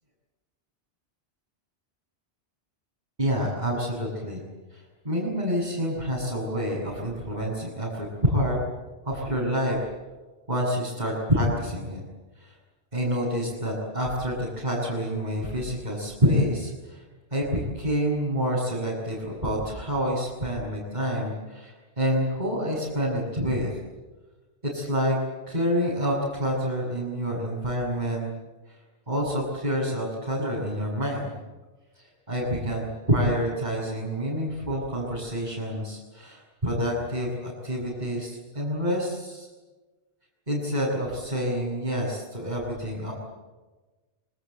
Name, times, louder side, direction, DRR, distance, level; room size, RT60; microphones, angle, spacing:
voice 1, 3.2-4.4 4.7-8.6 9.0-9.8 10.5-12.0 12.4-12.6 12.9-17.0 17.3-23.8 24.7-25.2 25.5-28.3 28.7-28.8 29.1-31.4 31.9-39.5 40.5-43.1, equal, 40° right, -5 dB, 7.4 m, -27 dB
27.0 x 25.5 x 8.0 m, 1.2 s
omnidirectional pair, 1.2 m